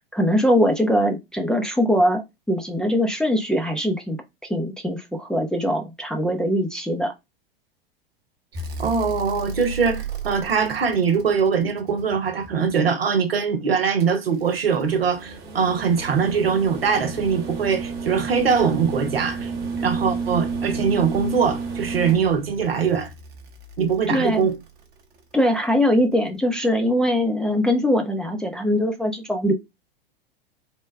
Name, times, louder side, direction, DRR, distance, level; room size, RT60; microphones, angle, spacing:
voice 1, 0.1-2.2 2.5-4.2 4.5-7.1 24.1-24.5 25.3-29.5, equal, ahead, 0.5 m, -21 dB
sound 1, 8.5-12.7 14.0-25.2 26.7-26.8, right 4 dB, 35° right, 0.9 m, -32 dB
voice 2, 8.8-19.5 19.8-23.1 23.8-24.6, right 6 dB, 80° right, 0.9 m, -22 dB
3.5 x 2.2 x 3.2 m
figure-of-eight pair, 90°, 29 cm